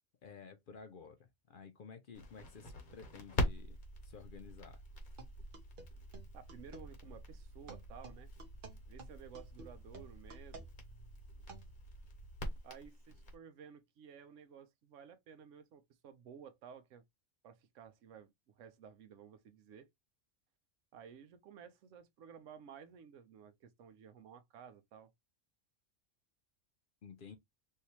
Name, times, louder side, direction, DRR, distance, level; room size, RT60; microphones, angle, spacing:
voice 1, 0.2-3.8 4.0-4.8 27.0-27.4, left 6 dB, 60° left, 0.5 m, -53 dB
Crackle, 2.1-13.3, left 1 dB, 40° left, 1.0 m, -44 dB
sound 1, 5.2-6.9 7.7-11.8, right 3 dB, 45° right, 1.0 m, -53 dB
voice 2, 6.3-8.3 8.9-10.7 12.6-17.0 17.4-19.9 20.9-25.1, right 7 dB, 70° right, 1.0 m, -55 dB
3.4 x 2.7 x 2.9 m
omnidirectional pair, 1.4 m